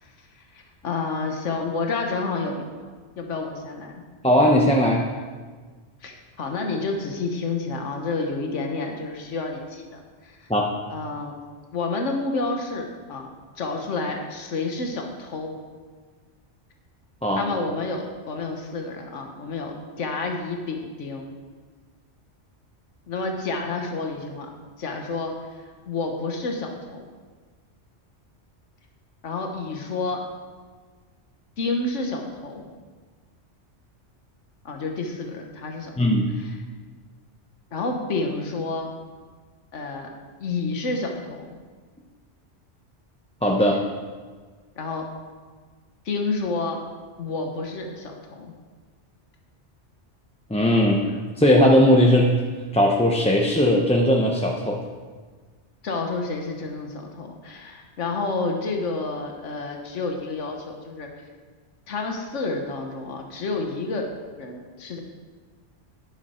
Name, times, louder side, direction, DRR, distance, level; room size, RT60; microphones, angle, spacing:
voice 1, 0.0-4.0 6.0-10.5 10.9-11.4 11.7-13.3 13.6-15.5 17.3-21.3 23.1-24.5 24.8-27.1 29.2-30.2 31.6-32.7 34.6-36.0 36.4-36.5 37.7-38.9 39.7-40.1 40.4-41.6 44.8-45.1 46.0-46.8 47.2-48.5 55.8-61.1 61.9-64.1 64.4-65.0, left 3 dB, 85° left, 3 dB, 1.5 m, -30 dB
voice 2, 4.2-5.0 10.5-10.7 17.2-17.4 36.0-36.3 43.4-43.8 50.5-51.0 51.4-52.3 52.7-54.8, equal, 5° left, -1 dB, 0.7 m, -18 dB
11.0 x 10.5 x 4.4 m, 1.5 s
omnidirectional pair, 1.2 m